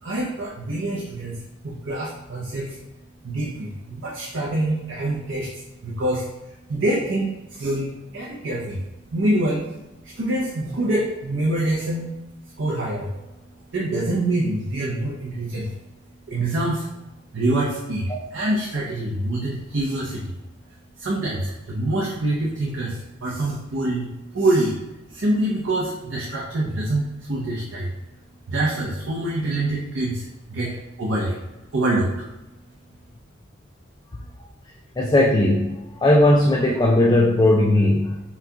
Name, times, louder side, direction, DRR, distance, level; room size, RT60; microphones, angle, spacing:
voice 1, 0.0-2.8 3.2-8.8 9.1-9.6 10.0-12.1 12.6-13.2 13.7-15.7 16.3-16.9 17.3-20.4 21.0-24.1 24.3-24.8 25.1-27.9 28.5-31.4 31.7-32.2, right 1 dB, 80° right, -4 dB, 0.7 m, -25 dB
voice 2, 35.0-38.2, left 1 dB, 20° left, -1 dB, 0.3 m, -17 dB
5.7 x 2.3 x 2.8 m, 0.98 s
head